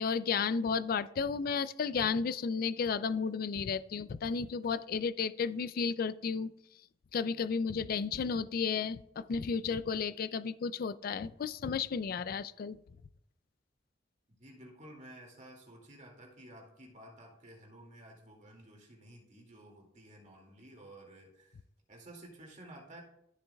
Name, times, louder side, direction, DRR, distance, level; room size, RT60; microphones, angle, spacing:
voice 1, 0.0-6.5 7.1-12.8, left 5 dB, 50° left, 16 dB, 0.3 m, -33 dB
voice 2, 14.4-21.6 21.9-23.0, right 1 dB, 40° right, 0 dB, 2.2 m, -53 dB
13.0 x 7.1 x 2.3 m, 0.75 s
head